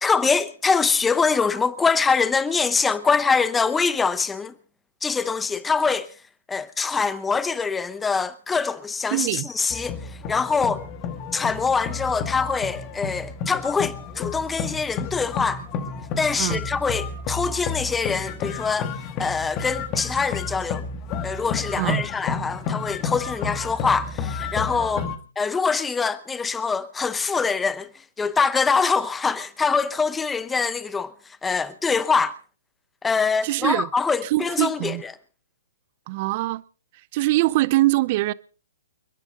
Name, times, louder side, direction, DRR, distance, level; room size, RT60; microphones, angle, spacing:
voice 1, 0.0-4.5 5.0-6.1 6.5-10.9 11.3-15.6 16.2-18.9 19.2-20.8 21.2-25.1 25.4-27.9 28.2-31.1 31.4-32.3 33.0-35.1, left 5 dB, 10° left, 0.9 m, -24 dB
voice 2, 9.1-9.5 16.4-16.6 21.8-22.1 25.0-25.2 33.4-33.9 34.2-35.0 36.1-36.6 37.1-38.3, right 18 dB, 40° right, 0.6 m, -23 dB
sound 1, 9.7-25.2, left 5 dB, 30° left, 1.8 m, -31 dB
29.5 x 10.5 x 3.7 m
hypercardioid pair, 145°, 0 cm